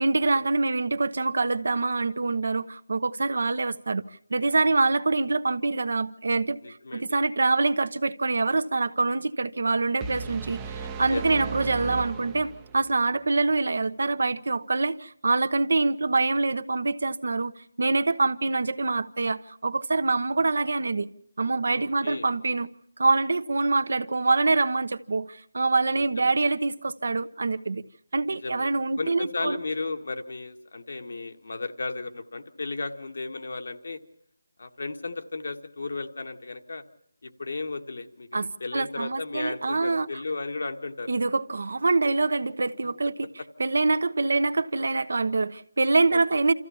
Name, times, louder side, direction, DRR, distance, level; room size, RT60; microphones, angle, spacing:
voice 1, 0.0-4.0 4.3-17.5 17.8-21.1 21.4-22.7 23.0-27.8 28.1-29.6 38.3-40.1 41.1-43.3 43.6-46.5, right 3 dB, 65° right, 1.0 m, -25 dB
voice 2, 6.6-7.2 11.1-11.2 21.6-22.3 26.0-26.3 28.3-28.7 29.0-34.0 34.6-36.8 37.2-41.1 43.4-43.5 46.1-46.2, left 3 dB, 65° left, 1.8 m, -34 dB
sound 1, 10.0-13.0, right 5 dB, 10° right, 0.8 m, -36 dB
25.5 x 14.5 x 7.1 m
figure-of-eight pair, 165°, 0 cm